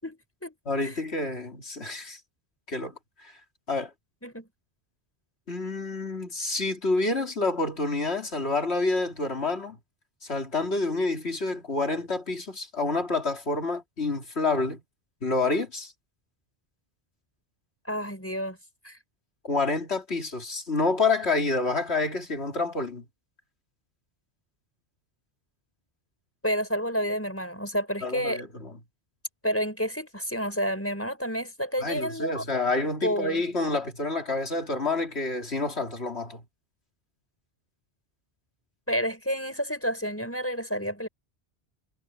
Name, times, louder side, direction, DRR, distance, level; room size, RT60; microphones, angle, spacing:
voice 1, 0.0-0.5 0.8-1.0 4.2-4.5 17.9-18.6 18.8-19.0 26.4-28.4 29.4-32.4 33.0-33.4 38.9-41.1, equal, 10° left, 5.4 m, -30 dB
voice 2, 0.7-2.2 2.7-2.9 3.2-3.3 3.7-3.9 5.5-9.8 10.2-14.8 15.2-15.9 19.4-23.0 28.0-28.7 31.8-36.4, left 3 dB, 70° left, 3.3 m, -28 dB
omnidirectional pair, 1.1 m